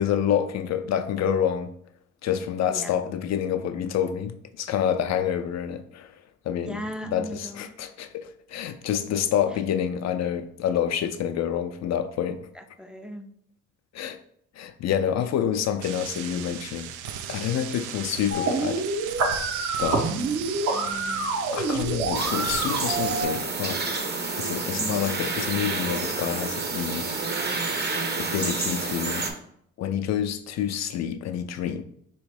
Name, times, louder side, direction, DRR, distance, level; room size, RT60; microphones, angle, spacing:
voice 1, 0.0-1.7 2.2-12.5 13.9-14.2 14.6-18.9 19.8-20.1 21.5-24.1 24.4-27.1 28.2-29.3 29.8-31.8, left 9 dB, 60° left, 0.5 m, -28 dB
voice 2, 2.7-3.0 6.7-7.7 12.6-13.3 20.6-21.3 24.8-25.1, equal, 5° right, 0.4 m, -37 dB
sound 1, 15.8-23.2, right 9 dB, 85° right, 0.4 m, -36 dB
sound 2, 18.3-23.3, right 3 dB, 60° right, 0.9 m, -27 dB
sound 3, 22.1-29.3, right 3 dB, 35° right, 0.8 m, -29 dB
3.5 x 3.1 x 4.8 m
cardioid pair, 90°, 30 cm